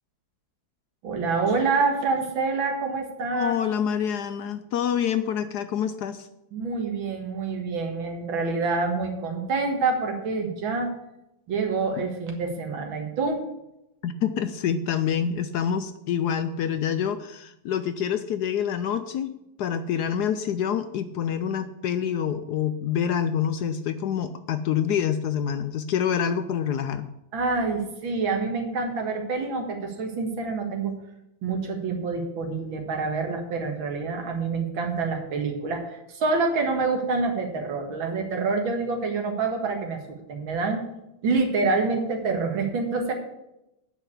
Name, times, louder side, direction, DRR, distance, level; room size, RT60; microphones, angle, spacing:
voice 1, 1.0-3.5 6.5-11.0 11.5-13.5 27.3-30.9 31.4-40.0 40.3-40.8 41.2-43.1, right 4 dB, 80° right, 3 dB, 2.5 m, -27 dB
voice 2, 3.3-6.3 14.0-19.3 19.6-27.1, left 8 dB, 70° left, 11 dB, 1.0 m, -27 dB
9.1 x 5.8 x 8.3 m, 0.88 s
omnidirectional pair, 2.1 m